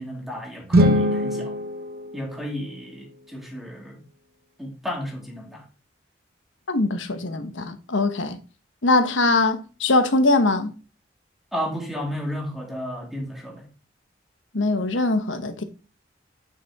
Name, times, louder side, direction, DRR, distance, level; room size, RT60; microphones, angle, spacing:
voice 1, 0.0-1.5 2.1-4.0 4.6-5.6 11.5-13.7, equal, ahead, 2.1 m, -32 dB
sound 1, 0.6-2.9, equal, 50° right, 0.9 m, -23 dB
voice 2, 6.7-8.4 8.8-10.7 14.5-15.6, left 2 dB, 90° left, 1.1 m, -22 dB
9.2 x 5.0 x 3.6 m
head